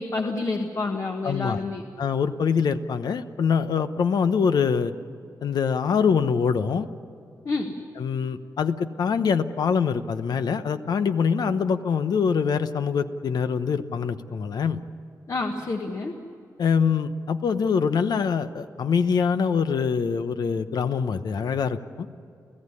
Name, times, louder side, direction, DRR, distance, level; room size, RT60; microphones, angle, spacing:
voice 1, 0.0-1.8 7.4-7.7 15.3-16.1, left 3 dB, 50° left, 3 dB, 1.5 m, -28 dB
voice 2, 1.2-1.6 2.0-4.9 5.4-6.9 8.0-14.8 16.6-22.1, left 6 dB, 85° left, 10 dB, 0.9 m, -24 dB
29.5 x 15.5 x 9.8 m, 2.5 s
wide cardioid pair, 110°, 7 cm